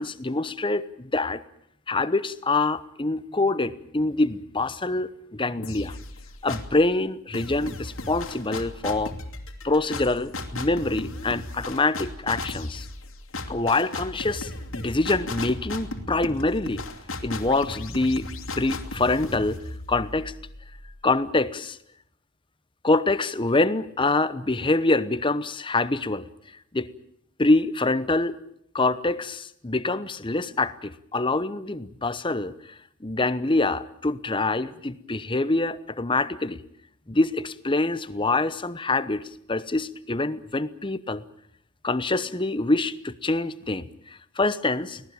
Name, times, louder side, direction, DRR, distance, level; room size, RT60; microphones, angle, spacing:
voice 1, 0.0-1.4 1.9-6.0 6.4-9.1 9.6-12.9 13.5-16.8 17.2-18.3 18.6-19.6 19.9-20.3 21.0-21.8 22.8-26.3 26.7-26.9 27.4-28.3 28.7-36.6 37.1-41.2 41.8-45.0, left 2 dB, 25° left, 15 dB, 1.0 m, -25 dB
sound 1, 5.6-6.8 7.3-21.0, left 2 dB, 70° left, 2.7 m, -36 dB
25.0 x 18.0 x 8.9 m, 0.73 s
head